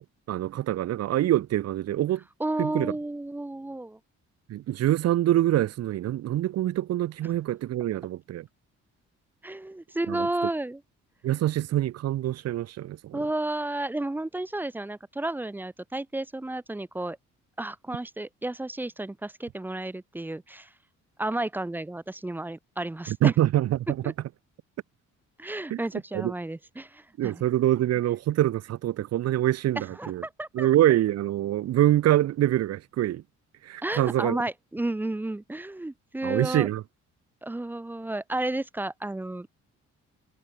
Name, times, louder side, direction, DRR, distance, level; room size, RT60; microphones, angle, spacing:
voice 1, 0.0-2.2 2.6-2.9 4.5-8.5 10.1-10.3 11.2-13.2 23.1-24.0 25.7-25.8 26.1-26.3 27.2-30.2 30.5-33.2 33.6-34.4 36.2-36.8, right 13 dB, 55° right, 0.6 m, -25 dB
voice 2, 2.4-4.0 9.4-10.8 13.1-17.2 17.6-20.7 21.2-23.3 24.0-24.1 25.4-27.4 29.8-30.7 33.8-36.7 37.4-39.5, right 2 dB, 5° right, 0.4 m, -32 dB
cardioid pair, 100°, 31 cm